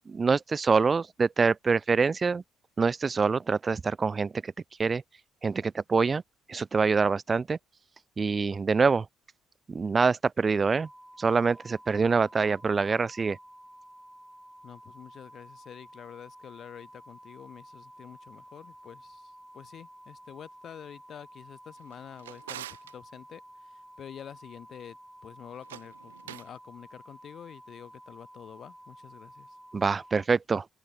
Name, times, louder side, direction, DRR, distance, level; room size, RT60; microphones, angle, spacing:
voice 1, 0.1-2.4 2.8-4.5 4.8-5.0 5.4-6.2 6.5-7.6 8.2-9.1 9.7-10.9 11.2-13.4 29.7-30.8, right 4 dB, 35° right, 0.9 m, -25 dB
sound 1, 10.8-30.3, equal, 5° right, 3.3 m, -51 dB
voice 2, 14.6-25.0 25.2-29.6, left 9 dB, 55° left, 4.3 m, -48 dB
Drawer open or close, 21.8-23.0 25.5-26.6, right 13 dB, 90° right, 0.9 m, -45 dB
hypercardioid pair, 50°, 0 cm